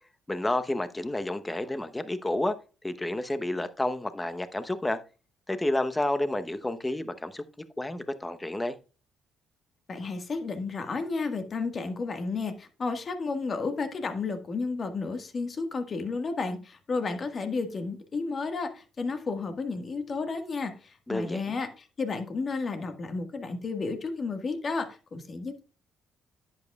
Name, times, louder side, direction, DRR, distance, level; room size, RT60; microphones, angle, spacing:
voice 1, 0.3-2.5 2.8-5.0 5.5-7.4 7.8-8.8 21.1-21.6, left 1 dB, 15° left, 0.9 m, -30 dB
voice 2, 9.9-25.6, left 4 dB, 45° left, 1.6 m, -32 dB
10.5 x 8.6 x 2.3 m
supercardioid pair, 60°, 0 cm